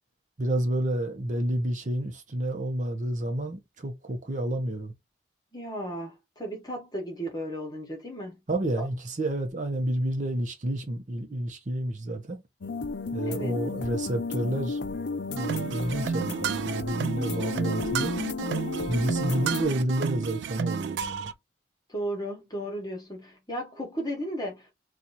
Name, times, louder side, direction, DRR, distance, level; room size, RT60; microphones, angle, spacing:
voice 1, 0.4-4.9 8.5-12.4 13.1-14.8 15.3-18.2 18.9-21.3, right 1 dB, 45° right, 0.7 m, -30 dB
voice 2, 5.5-8.4 13.2-13.6 21.9-24.7, equal, 25° left, 1.2 m, -35 dB
sound 1, 12.6-19.6, left 4 dB, 90° left, 0.5 m, -33 dB
sound 2, 15.4-21.3, right 7 dB, 90° right, 0.3 m, -31 dB
2.9 x 2.4 x 3.9 m
head